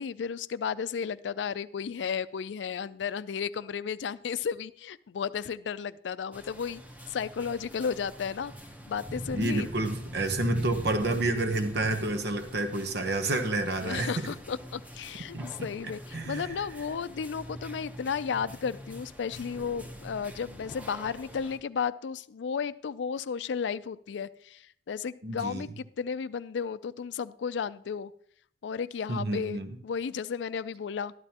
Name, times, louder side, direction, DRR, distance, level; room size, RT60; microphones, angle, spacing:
voice 1, 0.0-6.8 7.1-8.5 8.9-9.7 13.8-28.1 28.6-31.1, left 6 dB, 80° left, 15 dB, 0.4 m, -33 dB
sound 1, 6.3-21.6, equal, 10° right, 0.8 m, -42 dB
voice 2, 9.3-14.1 15.3-15.5 16.1-16.5 25.2-25.6 29.1-29.7, right 2 dB, 65° right, 7 dB, 0.9 m, -29 dB
12.5 x 11.0 x 2.9 m, 0.63 s
head